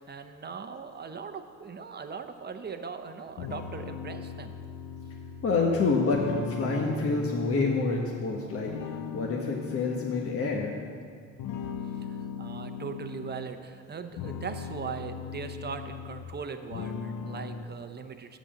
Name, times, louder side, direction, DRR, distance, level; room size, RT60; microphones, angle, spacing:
voice 1, 0.1-4.5 12.1-18.4, right 5 dB, 35° right, 8 dB, 0.8 m, -39 dB
sound 1, 3.4-8.3 8.7-10.9 11.4-13.5 14.0-16.4 16.7-17.6, left 5 dB, 90° left, 0.7 m, -38 dB
voice 2, 5.4-6.2 6.5-8.7 9.1-10.7, left 4 dB, 50° left, -1 dB, 1.2 m, -27 dB
8.2 x 7.3 x 7.6 m, 2.1 s
cardioid pair, 90°, 30 cm